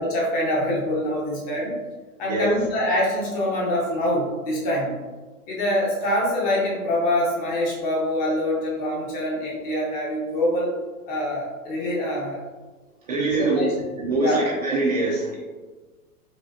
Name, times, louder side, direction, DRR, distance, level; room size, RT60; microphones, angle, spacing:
voice 1, 0.0-1.8 2.2-4.9 5.5-10.7 11.1-12.4 13.3-13.7 14.2-14.4, left 1 dB, 20° left, -3 dB, 0.6 m, -25 dB
voice 2, 13.1-13.6 14.0-15.4, right 2 dB, 30° right, -4 dB, 0.4 m, -23 dB
5.1 x 2.4 x 2.3 m, 1.3 s
figure-of-eight pair, 105°, 45 cm